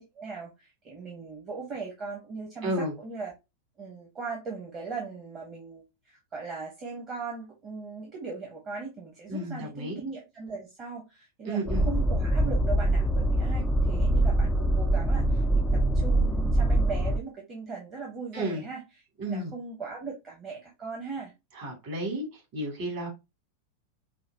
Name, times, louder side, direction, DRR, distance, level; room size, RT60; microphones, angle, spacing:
voice 1, 0.0-3.3 3.8-18.8 19.3-21.3, right 4 dB, 30° right, 1.2 m, -39 dB
voice 2, 2.6-2.9 9.3-10.0 11.5-11.9 18.3-18.6 19.2-19.5 21.5-22.3 22.5-23.1, right 1 dB, 45° right, 2.7 m, -32 dB
sound 1, 11.7-17.2, right 1 dB, 10° left, 0.4 m, -24 dB
5.7 x 2.3 x 2.8 m
figure-of-eight pair, 90°, 0 cm